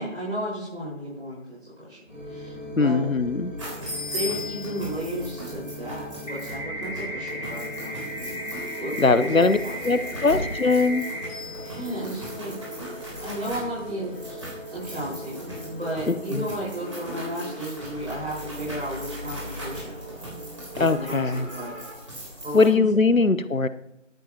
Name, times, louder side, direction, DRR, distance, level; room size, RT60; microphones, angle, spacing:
voice 1, 0.0-3.1 4.1-8.4 8.8-10.3 11.6-12.6 13.2-20.0 20.7-21.2 21.5-21.7 22.4-23.1, equal, 50° right, -8 dB, 5.2 m, -34 dB
sound 1, 2.1-21.9, equal, 10° right, 4.5 m, -40 dB
voice 2, 2.8-3.5 9.0-9.6 9.8-11.0 16.1-16.5 20.8-21.5 22.5-23.7, left 3 dB, 90° left, 14 dB, 1.0 m, -21 dB
sound 2, 3.6-22.7, equal, 25° right, 3.4 m, -38 dB
sound 3, 6.3-11.3, equal, 65° left, 3.0 m, -35 dB
14.5 x 12.0 x 2.9 m, 0.80 s
figure-of-eight pair, 170°, 39 cm